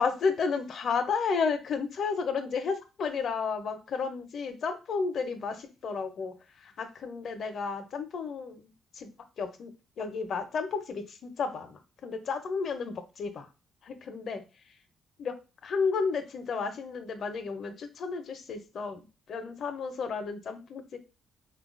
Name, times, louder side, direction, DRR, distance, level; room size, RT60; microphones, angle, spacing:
voice 1, 0.0-9.1 9.4-13.5 13.8-14.4 15.2-15.4 15.6-21.0, left 5 dB, 60° left, 9 dB, 0.5 m, -32 dB
3.5 x 2.2 x 2.4 m, 0.31 s
cardioid pair, 90°, 0 cm